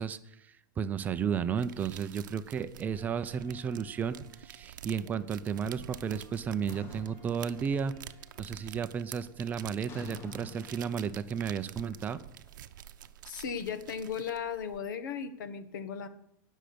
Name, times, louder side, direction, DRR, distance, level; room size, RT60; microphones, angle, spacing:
voice 1, 0.0-7.9 8.4-12.2, right 7 dB, 15° right, 12 dB, 0.5 m, -33 dB
sound 1, 1.2-14.8, right 11 dB, 85° right, 0.7 m, -48 dB
sound 2, 2.9-11.1, right 3 dB, 5° left, 4.2 m, -63 dB
sound 3, 6.7-8.2 8.5-9.0 9.9-12.9, left 5 dB, 20° left, 1.1 m, -50 dB
voice 2, 13.2-16.1, left 7 dB, 90° left, 11 dB, 1.5 m, -36 dB
18.0 x 6.4 x 6.8 m, 0.74 s
supercardioid pair, 165°, 10 cm